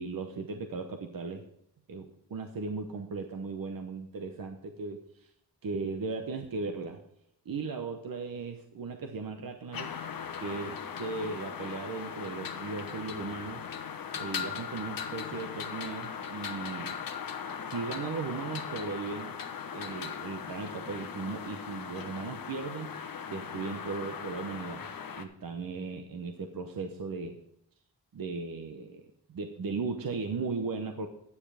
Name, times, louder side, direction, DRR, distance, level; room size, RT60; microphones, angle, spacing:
voice 1, 0.0-1.4 1.9-5.3 5.6-7.0 7.4-9.9 10.4-13.6 14.2-16.9 17.6-19.4 19.7-22.9 23.3-24.9 25.2-27.4 28.1-31.1, right 4 dB, 55° right, 6 dB, 0.9 m, -37 dB
sound 1, 9.7-25.3, left 7 dB, 55° left, 0.9 m, -39 dB
9.8 x 6.9 x 4.9 m, 0.73 s
cardioid pair, 75°, 41 cm